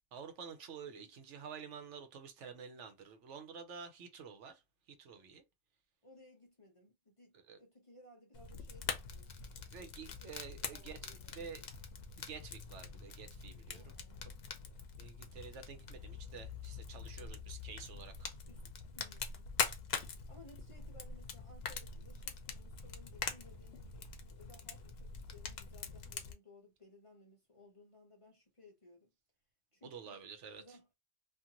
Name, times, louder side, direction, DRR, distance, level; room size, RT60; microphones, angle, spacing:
voice 1, 0.1-4.6 5.0-5.4 7.5-7.6 9.7-11.0 11.4-11.6 12.2-13.9 15.0-18.4 29.9-30.8, right 6 dB, 75° right, 1.0 m, -49 dB
voice 2, 6.0-9.5 9.8-10.3 10.7-11.6 13.7-14.4 17.1-17.5 18.5-18.7 18.9-19.5 20.3-29.1 29.7-30.2 30.6-30.9, left 1 dB, 30° left, 0.7 m, -61 dB
Fire, 8.3-26.3, left 6 dB, 65° left, 0.8 m, -44 dB
2.5 x 2.5 x 2.8 m
omnidirectional pair, 1.2 m